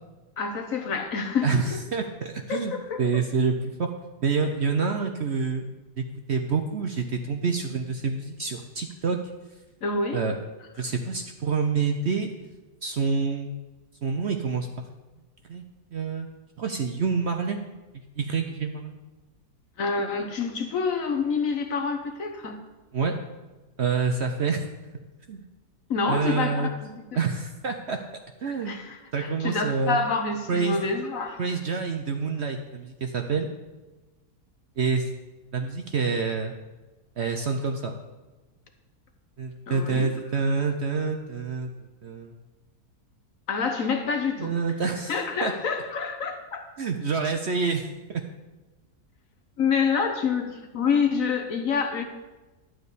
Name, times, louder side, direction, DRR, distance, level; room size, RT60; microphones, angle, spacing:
voice 1, 0.4-1.6 2.5-3.0 9.8-10.2 19.8-22.6 25.9-27.0 28.6-31.4 39.7-40.1 43.5-44.5 45.1-46.7 49.6-52.0, left 5 dB, 60° left, 5 dB, 1.4 m, -27 dB
voice 2, 1.4-2.7 3.0-3.9 4.2-5.7 6.0-9.2 10.1-10.3 10.8-12.3 12.8-13.5 14.0-14.7 15.5-15.6 15.9-16.3 16.6-17.6 18.2-19.0 22.9-23.1 23.8-24.6 25.3-25.4 26.1-26.7 27.2-28.0 28.4-28.8 29.1-30.0 30.5-30.9 31.4-33.5 34.8-35.1 35.5-36.5 37.2-37.9 39.4-41.7 42.0-42.4 44.4-45.5 46.8-48.2, right 5 dB, 55° right, 4 dB, 0.8 m, -27 dB
11.0 x 4.7 x 8.2 m, 1.2 s
omnidirectional pair, 1.7 m